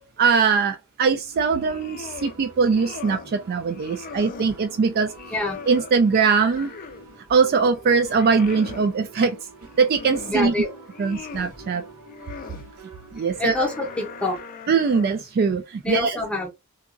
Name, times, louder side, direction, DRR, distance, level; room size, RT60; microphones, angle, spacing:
voice 1, 0.2-5.1 5.7-6.7 7.3-9.4 9.8-10.5 11.0-11.8 13.1-13.7 14.7-16.2, right 5 dB, 45° right, 0.3 m, -21 dB
sound 1, 1.3-14.4, right 3 dB, 85° right, 1.4 m, -46 dB
sound 2, 1.5-2.4 2.7-3.3 3.7-4.6 5.0-7.1 7.5-8.9 9.6-10.5 10.8-11.6 12.1-12.7 13.2-15.3, left 5 dB, 40° left, 0.4 m, -40 dB
voice 2, 10.3-10.7 13.4-14.4 15.8-16.5, left 2 dB, 5° left, 0.8 m, -26 dB
2.9 x 2.4 x 2.5 m
head